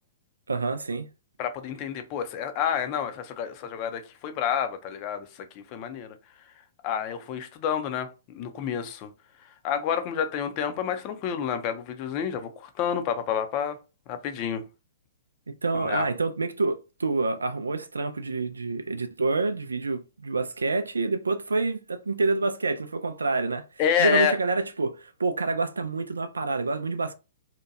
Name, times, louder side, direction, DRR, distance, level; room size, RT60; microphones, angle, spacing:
voice 1, 0.5-1.1 15.5-23.6 24.0-27.1, right 3 dB, 85° right, 0.3 m, -27 dB
voice 2, 1.4-5.3 5.6-6.2 6.8-8.1 8.3-9.1 9.6-13.8 14.1-14.6 15.9-16.1 23.8-24.3, left 8 dB, 40° left, 0.5 m, -28 dB
2.7 x 2.2 x 2.5 m
hypercardioid pair, 120°, 0 cm